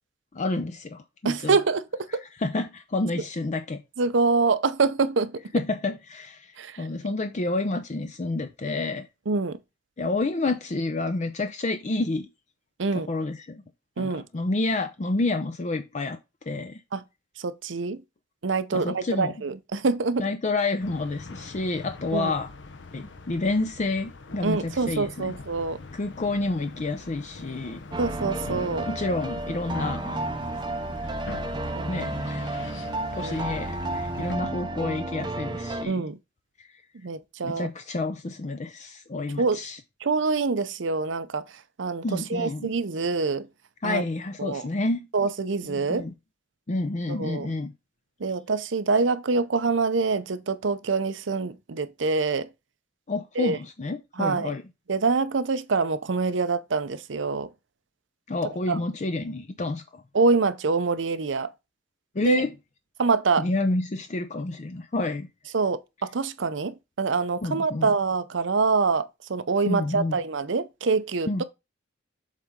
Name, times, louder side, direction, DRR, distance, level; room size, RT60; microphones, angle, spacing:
voice 1, 0.3-1.6 2.4-3.8 5.5-9.1 10.0-12.3 13.1-13.6 14.0-16.2 16.5-16.8 18.7-19.3 20.2-22.5 22.9-25.3 25.9-27.9 28.9-30.2 31.9-32.6 33.1-36.0 36.6-36.7 37.4-39.8 42.0-42.7 43.8-45.1 45.7-46.1 46.7-47.7 53.1-54.6 58.3-60.0 62.1-62.5 63.4-65.3 67.4-67.9 69.7-70.2 71.3-71.4, left 2 dB, 40° left, 0.6 m, -29 dB
voice 2, 1.2-2.2 4.0-5.4 6.6-6.9 9.3-9.6 12.8-13.1 14.0-14.2 16.9-17.0 17.4-18.0 18.4-20.3 22.1-22.3 24.4-25.8 28.0-28.9 31.8-32.0 33.2-33.5 35.8-36.2 37.0-37.7 39.4-39.6 40.0-43.5 43.8-44.0 44.4-44.6 45.1-46.1 47.1-47.5 48.2-52.5 53.4-53.6 54.2-54.5 54.9-57.5 58.7-58.8 60.1-61.5 62.3-62.4 63.0-63.5 65.5-71.4, right 4 dB, 75° right, 0.7 m, -25 dB
sound 1, 20.8-34.4, left 3 dB, 65° left, 0.8 m, -42 dB
sound 2, 27.9-35.9, right 2 dB, 25° right, 0.6 m, -32 dB
7.4 x 4.0 x 3.7 m
head